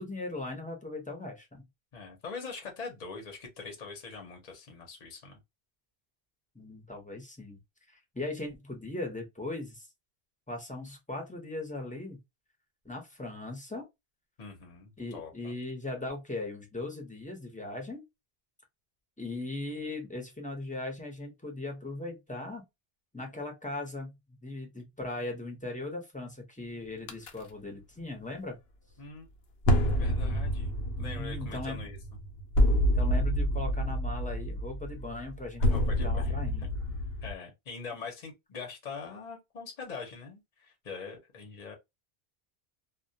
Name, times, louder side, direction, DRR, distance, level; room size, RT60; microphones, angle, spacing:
voice 1, 0.0-1.6 6.5-7.6 8.1-9.9 10.5-12.2 12.8-13.8 15.0-18.1 19.2-22.6 23.1-24.2 24.4-28.6 31.0-31.8 32.9-36.7, left 2 dB, 10° left, 0.6 m, -38 dB
voice 2, 1.9-5.4 14.4-15.6 29.0-29.3 29.7-30.7 31.0-32.0 35.7-36.7 37.2-41.7, left 4 dB, 45° left, 0.8 m, -43 dB
sound 1, 27.1-27.3 29.6-37.3, equal, 85° left, 0.8 m, -28 dB
2.2 x 2.2 x 2.6 m
omnidirectional pair, 1.0 m